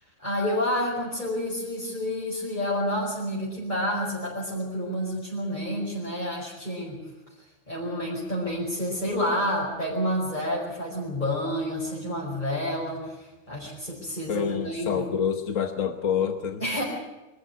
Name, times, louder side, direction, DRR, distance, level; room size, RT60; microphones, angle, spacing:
voice 1, 0.2-7.0 7.7-15.1 16.6-16.8, equal, 35° left, -6 dB, 5.7 m, -29 dB
voice 2, 14.3-16.6, left 7 dB, 75° left, 6 dB, 1.5 m, -27 dB
24.5 x 14.0 x 9.4 m, 1.1 s
omnidirectional pair, 1.3 m